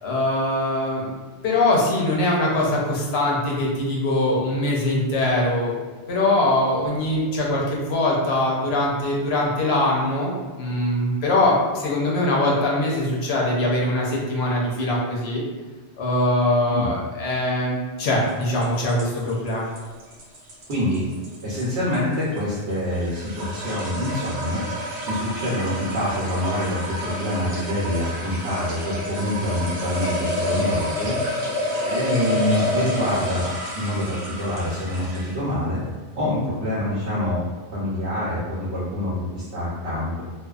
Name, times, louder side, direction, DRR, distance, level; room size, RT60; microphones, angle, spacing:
voice 1, 0.0-1.1 1.4-5.7 6.1-10.3 10.6-15.4 16.0-19.7, left 1 dB, 75° left, -3 dB, 0.9 m, -22 dB
sound 1, 18.3-35.5, left 1 dB, 55° right, 0.6 m, -29 dB
voice 2, 20.7-21.1 21.4-24.6 25.1-31.2 31.8-35.8 36.1-37.4 37.7-40.2, left 1 dB, 90° right, -9 dB, 1.0 m, -26 dB
2.5 x 2.2 x 2.3 m, 1.4 s
omnidirectional pair, 1.1 m